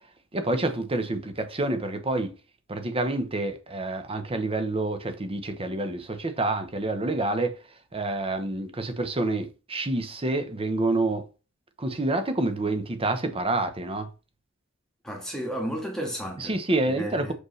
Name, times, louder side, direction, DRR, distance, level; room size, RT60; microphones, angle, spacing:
voice 1, 0.3-2.3 2.7-7.6 7.9-11.2 11.8-14.1 16.4-17.3, right 2 dB, 25° right, 0.9 m, -28 dB
voice 2, 15.0-16.5 16.9-17.3, equal, 5° left, 1.6 m, -33 dB
6.4 x 5.0 x 3.2 m
head